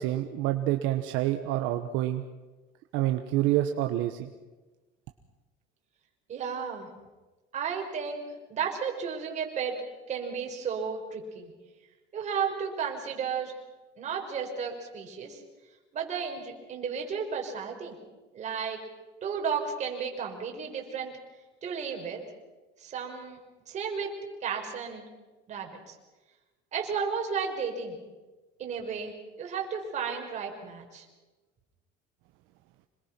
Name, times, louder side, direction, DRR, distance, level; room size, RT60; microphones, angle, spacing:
voice 1, 0.0-2.2 2.9-4.3, right 14 dB, 65° right, 6 dB, 1.3 m, -27 dB
voice 2, 6.3-6.9 7.5-9.8 10.1-11.5 12.1-13.6 14.0-15.4 15.9-18.0 18.3-18.8 19.2-21.1 21.6-22.2 22.8-23.4 23.7-24.1 24.4-25.1 25.5-25.9 26.7-27.9 28.6-31.0, right 6 dB, 35° right, 2 dB, 5.0 m, -33 dB
26.5 x 21.5 x 6.1 m, 1.2 s
cardioid pair, 145°, 21 cm